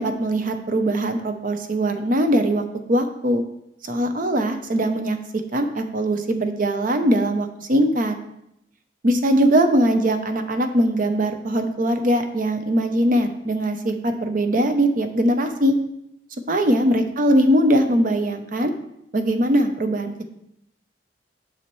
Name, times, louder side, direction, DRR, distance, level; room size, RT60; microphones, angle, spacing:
voice 1, 0.0-2.6 2.9-3.4 3.8-5.2 5.5-8.2 9.0-15.8 16.5-18.7 19.1-20.1, right 1 dB, 50° right, 7 dB, 0.7 m, -21 dB
7.0 x 6.4 x 3.1 m, 0.80 s
head